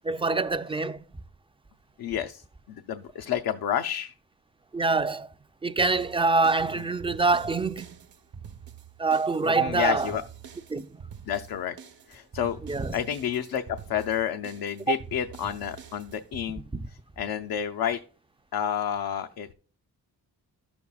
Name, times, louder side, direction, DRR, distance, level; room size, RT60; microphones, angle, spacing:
voice 1, 0.0-1.0 4.7-5.3 5.6-7.9 9.0-10.1 10.7-11.0 12.7-12.9 14.9-15.0 16.7-16.8, right 3 dB, 15° right, 0.4 m, -25 dB
voice 2, 2.0-4.1 9.4-10.2 11.3-11.8 12.1-12.6 12.9-16.6 17.2-18.0 18.5-19.5, left 9 dB, 75° left, 0.6 m, -30 dB
sound 1, 5.8-16.5, right 7 dB, 70° right, 0.9 m, -46 dB
11.5 x 7.0 x 2.3 m
cardioid pair, 80°, 37 cm